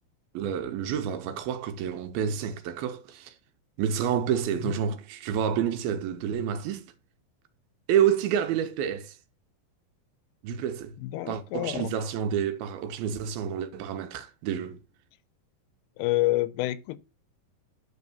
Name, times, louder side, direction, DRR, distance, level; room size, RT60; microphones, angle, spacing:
voice 1, 0.3-3.3 3.8-6.9 7.9-9.2 10.4-10.9 11.3-14.8, right 8 dB, 80° right, 2.6 m, -28 dB
voice 2, 11.0-11.9 16.0-17.0, left 17 dB, 85° left, 2.6 m, -28 dB
9.9 x 4.0 x 7.0 m
omnidirectional pair, 4.5 m